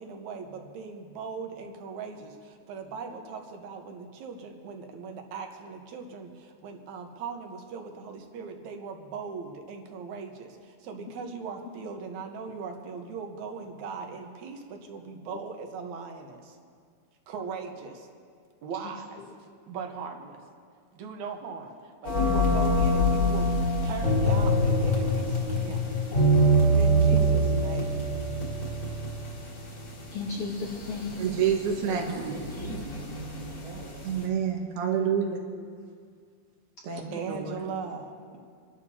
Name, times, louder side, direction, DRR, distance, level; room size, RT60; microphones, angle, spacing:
voice 1, 0.0-16.6 17.3-18.1 18.6-19.2 19.7-20.4 20.9-25.8 26.7-28.1 37.1-38.4, right 5 dB, 65° right, 3 dB, 2.2 m, -39 dB
sound 1, 22.0-34.2, right 1 dB, 35° left, 2.3 m, -25 dB
voice 2, 30.1-31.2 37.1-37.5, left 4 dB, 75° left, -2 dB, 1.3 m, -36 dB
voice 3, 31.2-32.5 34.0-35.4 36.8-37.5, right 7 dB, 90° right, 1 dB, 3.4 m, -28 dB
voice 4, 31.8-34.0, right 1 dB, 40° right, -6 dB, 1.5 m, -43 dB
28.5 x 12.0 x 2.8 m, 2.1 s
omnidirectional pair, 4.4 m